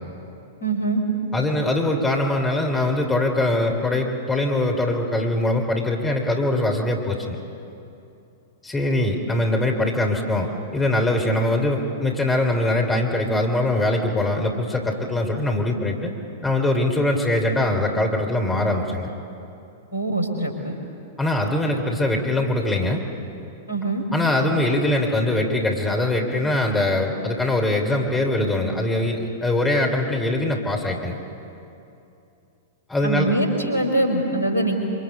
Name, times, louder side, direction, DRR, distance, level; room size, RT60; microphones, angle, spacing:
voice 1, 0.6-1.0 19.9-20.7 23.7-24.0 33.0-34.8, right 2 dB, 75° left, 3 dB, 5.0 m, -23 dB
voice 2, 1.3-7.4 8.6-16.1 16.4-19.1 21.2-23.0 24.1-31.2 32.9-33.3, left 1 dB, 10° left, 1 dB, 3.1 m, -22 dB
27.0 x 25.5 x 8.4 m, 2.8 s
figure-of-eight pair, 100°, 0 cm